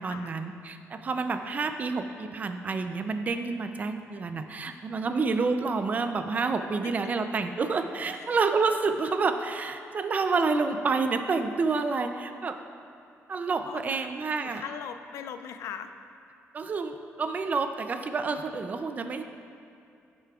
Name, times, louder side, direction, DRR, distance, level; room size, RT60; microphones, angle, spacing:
voice 1, 0.0-12.6 13.3-14.6 16.5-19.2, right 4 dB, 35° right, 8 dB, 0.4 m, -29 dB
voice 2, 13.5-14.1 14.4-15.9, left 8 dB, 85° left, 9 dB, 0.4 m, -40 dB
10.5 x 6.8 x 2.3 m, 2.6 s
cardioid pair, 140°, 5 cm